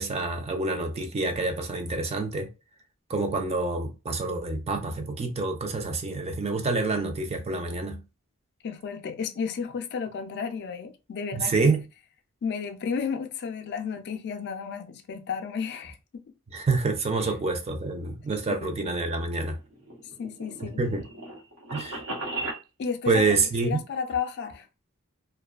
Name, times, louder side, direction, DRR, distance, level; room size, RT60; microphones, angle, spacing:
voice 1, 0.0-2.5 3.1-8.0 11.3-11.8 16.5-19.6 20.8-21.0 21.7-22.0 23.1-23.8, right 3 dB, 30° right, 0.4 m, -27 dB
voice 2, 8.6-11.7 12.4-16.0 18.6-18.7 20.2-20.8 22.8-23.3 23.6-24.7, left 6 dB, 50° left, 0.3 m, -32 dB
sound 1, 19.6-22.6, right 2 dB, 80° right, 0.9 m, -36 dB
2.4 x 2.2 x 2.3 m
head